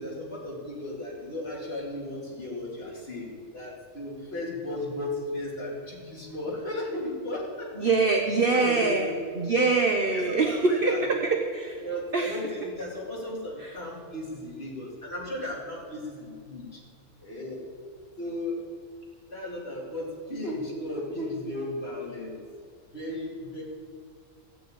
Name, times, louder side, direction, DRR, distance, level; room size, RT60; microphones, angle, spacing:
voice 1, 0.0-7.7 8.3-9.1 9.5-9.7 10.1-11.0 11.8-16.8 17.2-17.6 18.2-18.6 19.3-22.4 22.9-23.6, left 1 dB, 45° left, -4 dB, 3.3 m, -35 dB
voice 2, 7.8-11.8 12.1-12.4 13.6-13.7, right 3 dB, 40° right, 3 dB, 1.1 m, -24 dB
15.0 x 9.1 x 8.8 m, 2.1 s
omnidirectional pair, 1.5 m